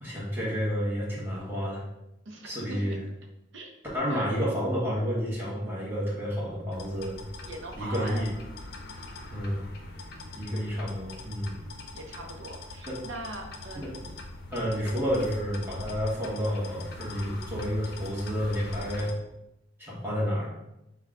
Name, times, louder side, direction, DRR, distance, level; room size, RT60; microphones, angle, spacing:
voice 1, 0.0-1.8 2.4-3.0 3.9-7.2 7.8-8.3 9.3-9.6 10.3-11.5 12.8-13.0 13.7-13.9 14.5-19.1 19.8-20.6, equal, 10° right, -6 dB, 1.2 m, -30 dB
voice 2, 2.3-3.0 3.5-4.4 7.4-8.2 9.4-9.7 10.1-10.4 11.5-14.1, right 1 dB, 80° right, 1 dB, 0.7 m, -42 dB
sound 1, 6.7-19.1, left 2 dB, 55° left, 0.6 m, -42 dB
5.6 x 2.3 x 3.7 m, 0.89 s
head